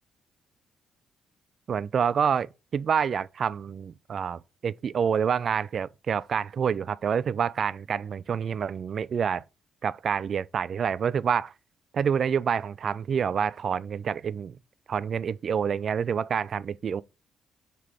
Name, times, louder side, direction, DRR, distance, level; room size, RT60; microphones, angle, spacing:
voice 1, 1.7-2.5 2.7-9.4 9.8-11.5 11.9-14.6 14.9-17.0, right 7 dB, 50° right, 0.3 m, -27 dB
5.8 x 3.3 x 4.8 m
cardioid pair, 90°, 0 cm